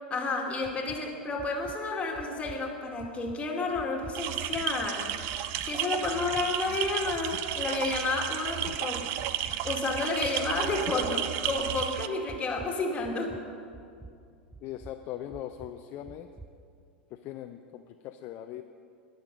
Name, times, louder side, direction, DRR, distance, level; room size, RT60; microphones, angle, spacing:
voice 1, 0.1-5.1 5.6-9.1 9.6-13.4, left 3 dB, 20° left, 1 dB, 2.1 m, -31 dB
sound 1, 0.6-1.0 1.4-1.8 2.1-2.6 3.0-3.4 3.7-4.2 4.5-4.9 5.3-5.7 6.0-6.4 6.8-7.2 7.6-8.0 8.4-8.8 9.2-9.6 9.9-10.3 10.7-11.1 11.5-11.9 12.3-12.8 13.0-13.5 13.7-14.1 14.5-14.9 15.3-15.7 16.1-16.5, right 3 dB, 5° right, 0.8 m, -46 dB
sound 2, 4.1-12.1, right 11 dB, 50° right, 0.6 m, -33 dB
voice 2, 14.6-16.3 17.1-18.6, left 12 dB, 40° left, 7 dB, 0.5 m, -40 dB
19.5 x 6.6 x 5.3 m, 2.3 s
figure-of-eight pair, 90°, 6 cm